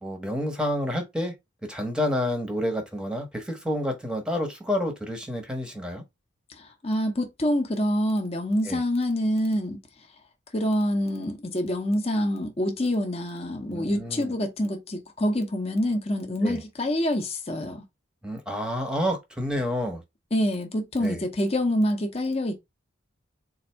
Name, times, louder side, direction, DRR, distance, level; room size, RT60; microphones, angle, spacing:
voice 1, 0.0-1.3 1.6-6.0 8.6-8.8 13.7-14.3 16.4-16.6 18.2-20.0 21.0-21.2, left 1 dB, 5° right, 0.9 m, -29 dB
voice 2, 6.6-9.8 10.5-17.8 20.3-22.6, left 1 dB, 30° left, 0.8 m, -26 dB
4.0 x 2.6 x 4.4 m
head